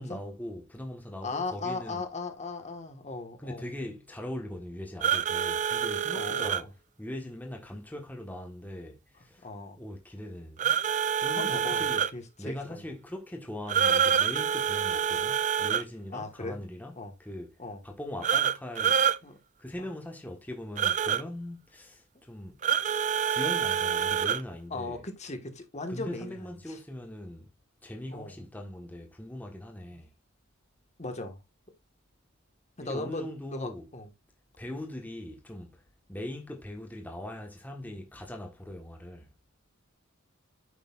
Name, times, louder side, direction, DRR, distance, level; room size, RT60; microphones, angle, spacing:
voice 1, 0.0-2.1 3.4-6.7 7.0-10.8 11.2-12.1 12.4-17.6 17.8-19.1 19.6-22.6 23.3-25.0 25.9-27.5 27.8-30.1 32.8-33.9 34.6-35.8 36.1-39.3, left 1 dB, 10° left, 1.5 m, -40 dB
voice 2, 1.2-3.7 6.1-6.5 9.4-9.8 11.3-11.8 12.1-12.8 16.1-16.6 17.0-17.1 17.6-17.8 19.2-19.4 24.7-26.4 26.7-26.8 28.1-28.3 31.0-31.4 32.8-34.1, left 3 dB, 35° left, 1.7 m, -37 dB
sound 1, 5.0-6.6 10.6-12.1 13.7-15.8 18.2-19.2 20.8-21.2 22.6-24.4, right 8 dB, 35° right, 0.4 m, -26 dB
9.6 x 6.8 x 2.5 m
head